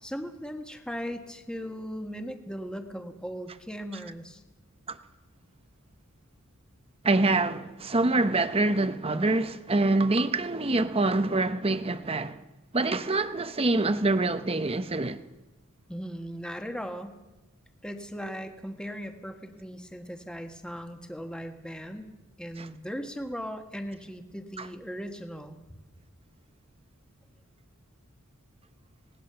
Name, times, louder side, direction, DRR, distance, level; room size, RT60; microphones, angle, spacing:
voice 1, 0.0-4.4 15.9-17.2 17.8-22.1 22.4-25.6, equal, 5° left, 1.3 m, -38 dB
voice 2, 7.0-12.4 12.7-15.2 22.6-22.7 24.6-24.7, right 2 dB, 25° right, 0.8 m, -25 dB
25.5 x 19.0 x 6.8 m
head